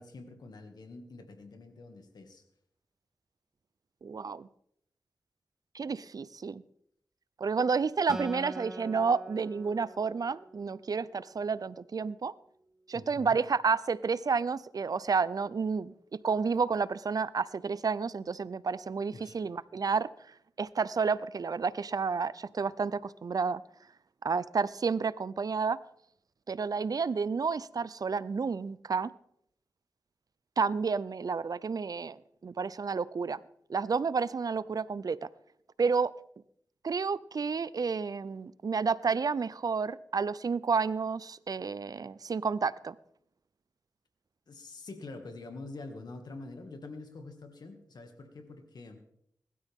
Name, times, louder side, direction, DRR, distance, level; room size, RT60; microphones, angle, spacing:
voice 1, 0.0-2.4 12.9-13.4 19.1-19.4 44.5-49.0, left 3 dB, 85° left, 5 dB, 2.2 m, -46 dB
voice 2, 4.0-4.5 5.7-6.6 7.4-12.3 12.9-20.1 20.6-23.6 24.2-25.8 26.5-29.1 30.6-33.4 33.7-35.2 35.8-36.1 36.8-43.0, right 5 dB, 65° right, 18 dB, 0.5 m, -30 dB
Acoustic guitar, 8.1-11.5, right 1 dB, 5° right, 1.2 m, -44 dB
20.5 x 13.0 x 3.7 m, 0.71 s
cardioid pair, 55°, 7 cm